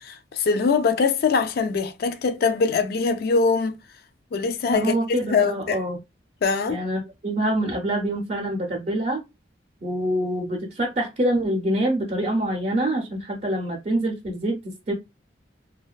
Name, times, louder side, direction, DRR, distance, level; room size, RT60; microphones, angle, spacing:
voice 1, 0.0-3.8 4.3-5.0 5.3-5.8 6.4-6.8, left 4 dB, 55° left, 0.3 m, -22 dB
voice 2, 4.7-6.0 6.7-9.2 9.8-14.9, right 1 dB, 40° right, 0.5 m, -25 dB
2.5 x 2.2 x 2.2 m
head